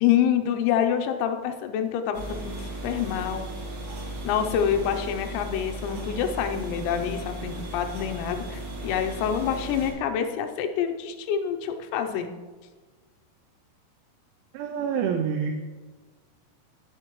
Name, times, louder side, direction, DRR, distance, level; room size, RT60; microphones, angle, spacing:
voice 1, 0.0-3.5 4.3-12.3, left 9 dB, 85° left, 6 dB, 3.5 m, -27 dB
sound 1, 2.1-9.9, right 1 dB, 40° right, 2.3 m, -36 dB
voice 2, 14.5-15.7, right 7 dB, 85° right, 4 dB, 2.7 m, -27 dB
16.0 x 7.3 x 3.1 m, 1.3 s
omnidirectional pair, 6.0 m